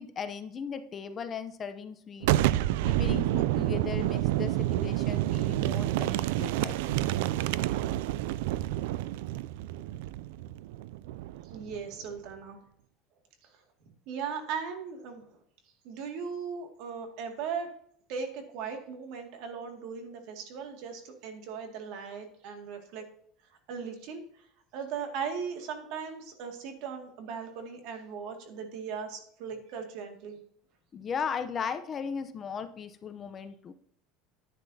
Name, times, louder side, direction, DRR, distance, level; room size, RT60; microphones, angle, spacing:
voice 1, 0.0-2.4 2.8-7.2 30.9-33.7, left 6 dB, 25° left, 9 dB, 0.7 m, -37 dB
Boom, 2.2-11.8, right 15 dB, 80° right, 0.3 m, -29 dB
voice 2, 11.4-12.6 13.4-13.6 14.1-15.4 15.8-17.7 18.1-23.0 23.5-24.5 24.7-30.4, right 6 dB, 60° right, 4 dB, 2.2 m, -38 dB
10.5 x 9.9 x 2.8 m, 0.65 s
cardioid pair, 150°, 0 cm